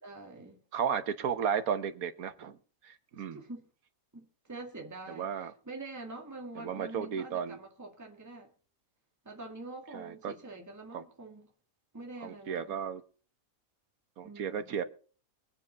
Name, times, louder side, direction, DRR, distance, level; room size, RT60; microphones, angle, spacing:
voice 1, 0.0-0.6 3.3-3.6 4.1-8.5 9.3-11.5 11.9-12.8 14.2-14.7, right 2 dB, 10° right, 1.8 m, -45 dB
voice 2, 0.7-2.6 2.8-3.4 5.1-5.5 6.6-7.6 9.9-10.3 10.9-11.0 12.2-13.0 14.2-14.8, right 7 dB, 85° right, 1.5 m, -34 dB
22.5 x 7.6 x 4.0 m
omnidirectional pair, 1.5 m